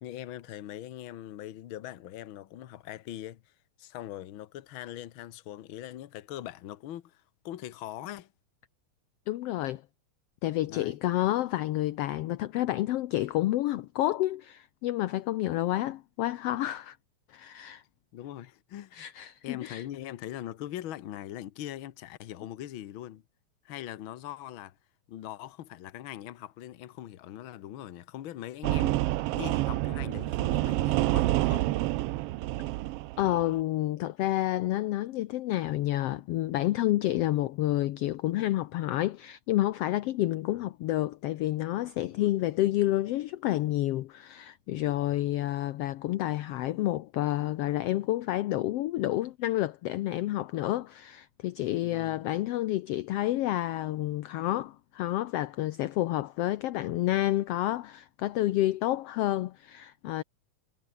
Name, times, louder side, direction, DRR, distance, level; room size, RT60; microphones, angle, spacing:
voice 1, 0.0-3.5 3.8-8.3 10.6-11.0 18.1-19.1 19.4-23.2 23.6-24.8 25.1-31.8 40.5-40.6 42.1-42.3 44.8-45.1 51.8-52.2, left 12 dB, 55° left, 1.5 m, -41 dB
voice 2, 9.3-9.8 10.4-17.0 17.3-17.8 18.9-19.8 33.2-60.2, left 15 dB, 75° left, 1.5 m, -29 dB
sound 1, 28.6-33.5, right 17 dB, 85° right, 1.3 m, -28 dB
omnidirectional pair, 3.3 m